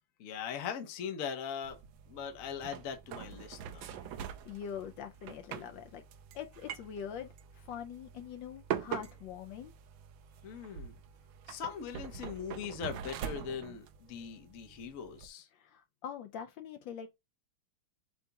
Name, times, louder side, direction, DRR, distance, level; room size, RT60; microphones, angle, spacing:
voice 1, 0.2-1.8 2.1-4.0 10.4-10.9 11.5-15.5, left 7 dB, 55° left, 0.9 m, -40 dB
sound 1, 1.6-15.3, right 9 dB, 75° right, 1.3 m, -44 dB
voice 2, 4.0-6.0 6.3-9.7 15.5-17.1, left 8 dB, 75° left, 1.2 m, -44 dB
7.9 x 2.8 x 2.3 m
omnidirectional pair, 2.3 m